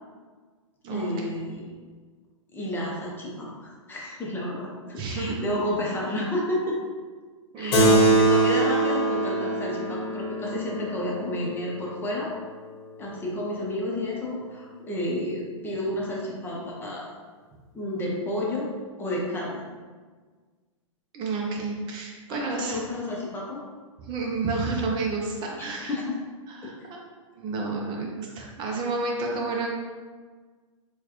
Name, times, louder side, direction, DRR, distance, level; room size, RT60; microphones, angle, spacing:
voice 1, 0.9-1.7 2.5-6.8 7.6-12.3 13.0-17.1 17.7-18.7 19.0-19.6 22.3-23.6 25.6-26.2, left 1 dB, 10° left, -3 dB, 0.8 m, -31 dB
voice 2, 5.0-5.4 7.5-8.5 21.1-22.8 24.0-26.0 26.5-27.0 27.3-29.7, right 3 dB, 30° right, -1 dB, 0.7 m, -30 dB
Keyboard (musical), 7.7-12.6, right 2 dB, 50° left, 1.0 m, -23 dB
4.5 x 2.4 x 3.0 m, 1.5 s
hypercardioid pair, 125°, 17 cm